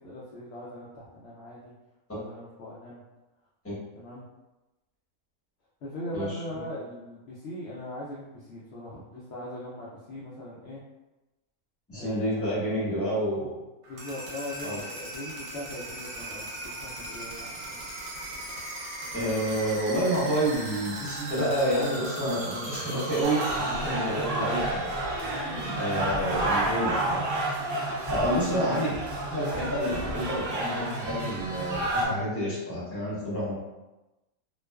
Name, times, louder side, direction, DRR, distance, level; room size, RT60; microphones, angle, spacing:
voice 1, 0.0-1.7 2.1-3.0 4.0-4.2 5.8-10.8 11.9-12.8 13.9-17.9 26.2-26.5, left 1 dB, 70° left, -6 dB, 0.6 m, -40 dB
voice 2, 11.9-13.6 14.6-14.8 19.1-24.9 25.8-27.3 28.1-28.9 29.3-33.5, equal, 10° left, -9 dB, 0.7 m, -29 dB
sound 1, 13.8-27.7, right 1 dB, 60° right, 0.9 m, -38 dB
sound 2, 23.2-32.1, right 2 dB, 85° right, 0.5 m, -30 dB
2.4 x 2.3 x 2.2 m, 1.0 s
omnidirectional pair, 1.6 m